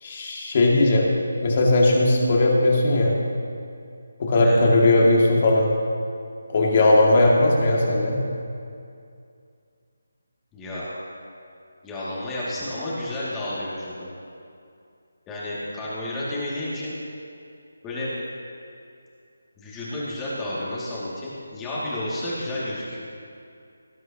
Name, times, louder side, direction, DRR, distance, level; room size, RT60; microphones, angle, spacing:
voice 1, 0.0-1.1 1.4-3.2 4.2-5.7 6.5-8.2, left 2 dB, 40° left, -2 dB, 2.3 m, -18 dB
voice 2, 10.5-10.9 11.8-14.1 15.3-17.0 17.8-18.1 19.6-23.0, left 1 dB, 10° left, -9 dB, 2.4 m, -31 dB
18.5 x 9.6 x 3.0 m, 2.4 s
figure-of-eight pair, 160°, 0 cm